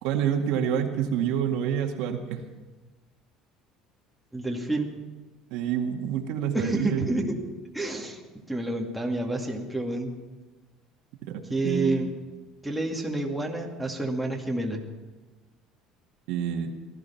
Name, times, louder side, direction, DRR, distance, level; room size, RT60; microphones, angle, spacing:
voice 1, 0.0-2.4 5.5-7.1 11.3-12.0 16.3-16.7, right 9 dB, 75° right, 3 dB, 2.0 m, -27 dB
voice 2, 4.3-4.9 6.5-7.4 7.7-8.2 8.5-10.1 11.5-12.1 12.6-14.8, right 2 dB, ahead, 0 dB, 2.3 m, -29 dB
18.5 x 13.5 x 5.8 m, 1.2 s
cardioid pair, 120°, 0 cm